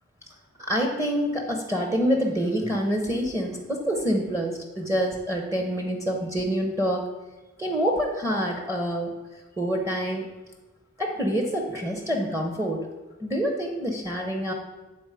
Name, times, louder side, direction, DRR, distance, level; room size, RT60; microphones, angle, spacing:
voice 1, 0.6-7.1 7.6-9.1 9.6-10.3 11.0-12.9 13.2-14.5, equal, 15° right, 0 dB, 0.7 m, -26 dB
7.8 x 3.9 x 4.8 m, 1.1 s
head